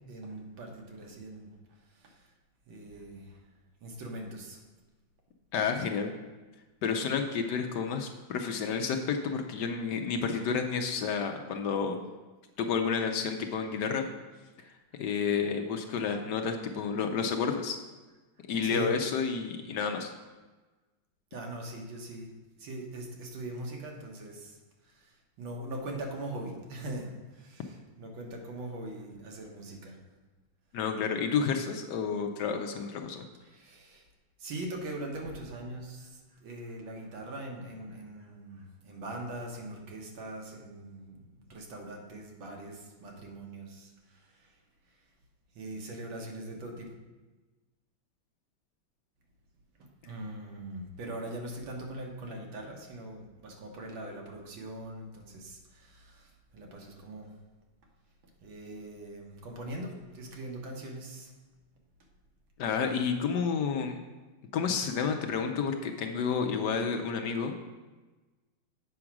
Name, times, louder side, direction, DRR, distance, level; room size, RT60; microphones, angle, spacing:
voice 1, 0.1-1.5 1.9-2.3 2.7-3.4 3.8-4.6 14.6-15.0 18.6-18.9 21.3-22.3 22.6-24.6 24.8-30.0 33.4-34.1 34.4-44.6 45.5-46.9 50.0-57.3 58.4-61.3, right 1 dB, 80° right, 1 dB, 2.0 m, -41 dB
voice 2, 5.5-6.1 6.8-12.0 12.6-14.1 15.0-17.8 18.5-20.1 30.7-33.2 62.6-64.0 64.5-67.5, left 6 dB, 70° left, 4 dB, 1.1 m, -30 dB
7.8 x 4.9 x 5.9 m, 1.2 s
omnidirectional pair, 2.1 m